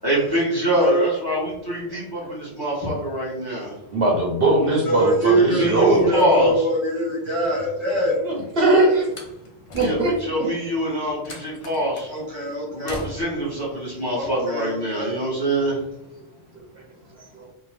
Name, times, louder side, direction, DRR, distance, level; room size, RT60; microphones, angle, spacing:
voice 1, 0.0-3.7 5.5-6.5 9.7-12.1 12.7-15.8, right 1 dB, 20° left, -6 dB, 0.8 m, -24 dB
voice 2, 0.7-1.1 3.7-3.8 4.8-8.3 12.1-13.0 14.2-15.2, right 1 dB, 30° right, -5 dB, 0.8 m, -23 dB
voice 3, 3.6-6.1 8.2-9.1 9.7-10.1 17.3-17.5, right 2 dB, 60° right, -3 dB, 0.8 m, -20 dB
Slam, 9.0-10.4 11.2-12.1 12.9-13.5, left 2 dB, 50° left, 0.4 m, -38 dB
2.7 x 2.1 x 3.1 m, 0.90 s
omnidirectional pair, 1.2 m